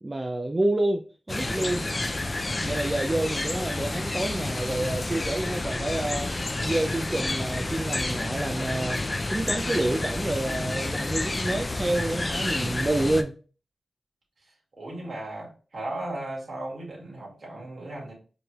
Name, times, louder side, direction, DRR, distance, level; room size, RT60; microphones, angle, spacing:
voice 1, 0.0-2.1 2.6-6.3 6.6-9.0 9.3-13.3, right 1 dB, 30° right, 3 dB, 0.5 m, -28 dB
sound 1, 1.3-13.2, left 2 dB, 35° left, 0.4 m, -30 dB
voice 2, 14.8-18.1, right 1 dB, 55° right, -4 dB, 2.2 m, -36 dB
4.9 x 3.2 x 2.4 m, 0.37 s
cardioid pair, 45°, 0 cm